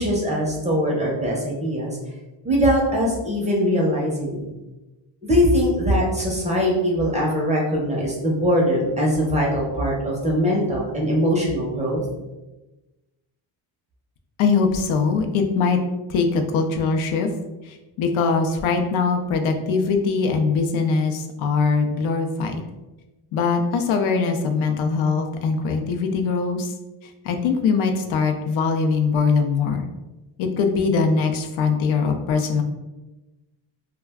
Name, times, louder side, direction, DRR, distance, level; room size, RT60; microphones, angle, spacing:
voice 1, 0.0-2.0 2.4-4.5 5.2-12.0, equal, 15° right, -3 dB, 0.5 m, -21 dB
voice 2, 14.4-15.8 16.1-17.3 17.7-22.6 23.3-26.7 27.2-29.9 30.4-32.6, left 5 dB, 75° left, 4 dB, 0.5 m, -22 dB
2.3 x 2.2 x 3.4 m, 1.1 s
cardioid pair, 145°, 48 cm